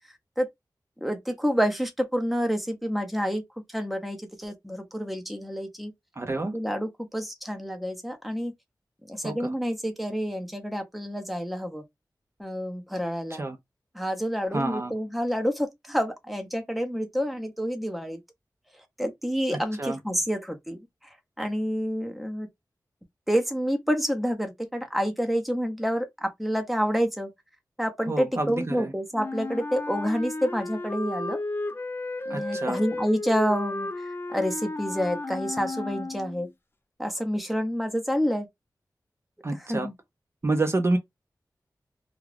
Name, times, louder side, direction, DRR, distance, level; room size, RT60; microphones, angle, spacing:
voice 1, 1.0-3.4 3.7-5.9 6.5-8.5 9.1-11.8 12.4-13.4 13.9-18.2 19.0-22.5 23.3-27.3 27.8-31.4 32.3-36.5 37.0-38.5 39.5-39.9, equal, ahead, 0.7 m, -28 dB
voice 2, 6.2-6.5 9.2-9.5 13.3-13.6 14.5-14.9 19.8-20.0 28.1-28.9 32.3-32.8 39.4-39.9 40.4-41.0, right 2 dB, 40° right, 0.6 m, -28 dB
Wind instrument woodwind instrument, 29.1-36.5, left 2 dB, 30° left, 0.4 m, -33 dB
2.4 x 2.3 x 3.2 m
wide cardioid pair, 85°, 7 cm